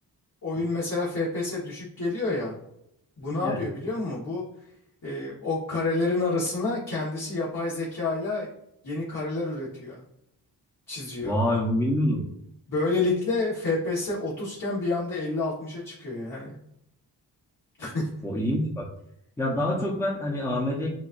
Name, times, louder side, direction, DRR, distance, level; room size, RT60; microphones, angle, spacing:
voice 1, 0.4-2.5 3.2-4.4 5.0-8.5 8.8-10.0 10.9-11.3 12.7-16.6 17.8-18.1, left 3 dB, 50° left, -7 dB, 1.6 m, -29 dB
voice 2, 11.2-12.2 18.2-18.8 19.4-20.9, left 1 dB, 5° left, -3 dB, 1.0 m, -26 dB
7.0 x 2.6 x 2.6 m, 0.78 s
cardioid pair, 55°, 41 cm